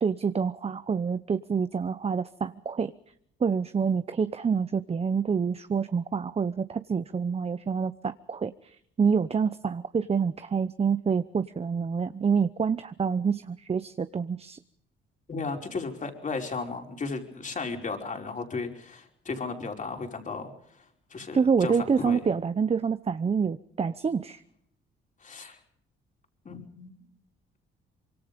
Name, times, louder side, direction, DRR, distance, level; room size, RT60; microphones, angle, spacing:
voice 1, 0.0-2.9 3.4-14.6 21.3-24.4, right 6 dB, 30° right, 12 dB, 0.9 m, -27 dB
voice 2, 15.3-20.5 21.1-22.2 25.2-25.6 26.5-26.9, left 4 dB, 40° left, 3 dB, 5.1 m, -35 dB
25.5 x 23.5 x 5.2 m, 0.67 s
cardioid pair, 90°, 20 cm